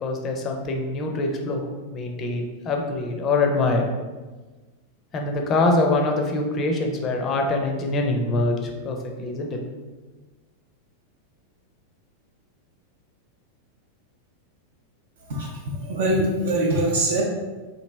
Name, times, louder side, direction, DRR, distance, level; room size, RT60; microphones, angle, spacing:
voice 1, 0.0-3.9 5.1-9.6, left 2 dB, 30° left, 2 dB, 0.5 m, -24 dB
voice 2, 15.3-17.2, right 1 dB, 60° right, -2 dB, 0.6 m, -23 dB
3.2 x 2.5 x 3.2 m, 1.3 s
figure-of-eight pair, 90°, 0 cm